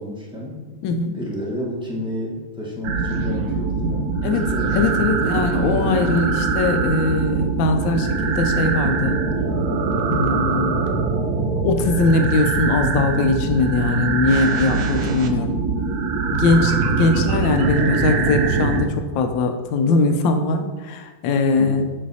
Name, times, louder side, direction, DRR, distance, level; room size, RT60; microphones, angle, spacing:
voice 1, 0.0-0.7 1.1-5.1 17.0-17.4 21.6-21.9, equal, 5° right, -5 dB, 0.5 m, -31 dB
voice 2, 0.8-1.2 4.2-9.2 10.1-10.8 11.6-15.6 16.3-21.9, left 3 dB, 70° left, 6 dB, 1.3 m, -21 dB
sound 1, 2.8-18.9, right 4 dB, 85° right, 0.8 m, -22 dB
7.5 x 3.3 x 4.0 m, 1.3 s
omnidirectional pair, 2.3 m